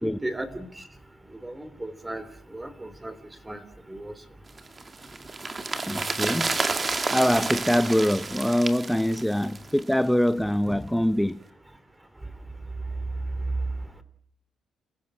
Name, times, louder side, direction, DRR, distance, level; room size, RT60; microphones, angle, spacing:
voice 1, 0.0-0.7 1.4-2.2 2.5-3.1 3.5-3.6 3.9-4.1, right 1 dB, 15° right, 3.1 m, -35 dB
sound 1, 4.6-10.0 10.3-10.4, right 3 dB, 30° right, 2.3 m, -30 dB
voice 2, 5.9-6.6 7.1-11.4, equal, ahead, 0.8 m, -24 dB
29.5 x 15.5 x 7.7 m
cardioid pair, 90°, 0 cm